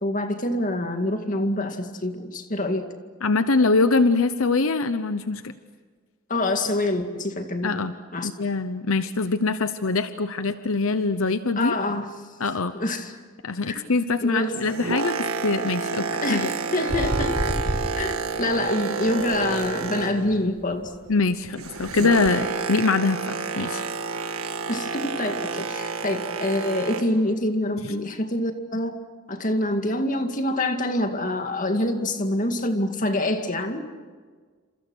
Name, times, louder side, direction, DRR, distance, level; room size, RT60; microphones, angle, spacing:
voice 1, 0.0-2.9 6.3-7.8 8.1-8.3 11.6-12.1 12.7-13.2 13.7-13.8 14.2-14.6 16.2-17.6 18.0-20.9 24.7-29.0 29.3-33.9, left 1 dB, 35° left, 5 dB, 2.2 m, -26 dB
voice 2, 3.2-5.5 7.6-7.9 8.2-11.7 12.4-12.7 13.4-16.5 21.1-23.8, left 3 dB, 75° left, 11 dB, 0.9 m, -23 dB
Boat Water vehicle, 14.4-20.5 20.8-27.2 27.9-28.0, right 4 dB, 90° right, 1.7 m, -29 dB
sound 1, 16.9-18.7 19.1-22.3, right 1 dB, 25° right, 1.3 m, -32 dB
29.0 x 28.0 x 6.3 m, 1.5 s
head